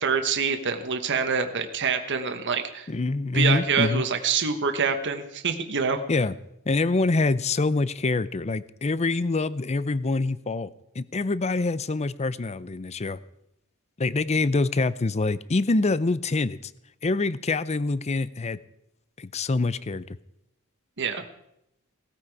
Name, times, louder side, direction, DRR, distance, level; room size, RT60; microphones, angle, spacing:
voice 1, 0.0-2.9 3.3-6.0 21.0-21.2, right 5 dB, 55° right, 6 dB, 1.3 m, -26 dB
voice 2, 2.9-4.0 6.1-6.4 6.7-13.2 14.0-16.7 17.0-18.6 19.2-20.2, left 3 dB, 30° left, 17 dB, 0.5 m, -25 dB
18.0 x 14.0 x 4.8 m, 0.81 s
head